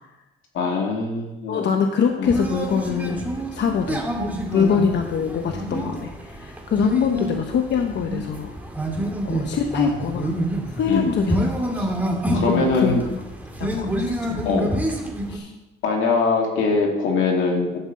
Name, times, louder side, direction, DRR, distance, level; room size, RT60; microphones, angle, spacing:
voice 1, 0.5-1.7 2.2-2.3 4.5-4.7 5.7-5.9 9.0-9.2 10.9-11.1 12.3-13.0 14.4-14.7 15.8-17.8, left 4 dB, 85° left, 0 dB, 2.6 m, -22 dB
voice 2, 1.5-4.1 4.5-8.6 9.2-10.4 10.6-11.5 11.8-11.9 12.5-13.2 13.6-14.7 15.3-15.5, left 6 dB, 60° left, 4 dB, 0.9 m, -24 dB
sound 1, 2.2-15.4, right 1 dB, 10° right, 2.1 m, -28 dB
11.5 x 5.4 x 7.7 m, 1.0 s
cardioid pair, 90°, 20 cm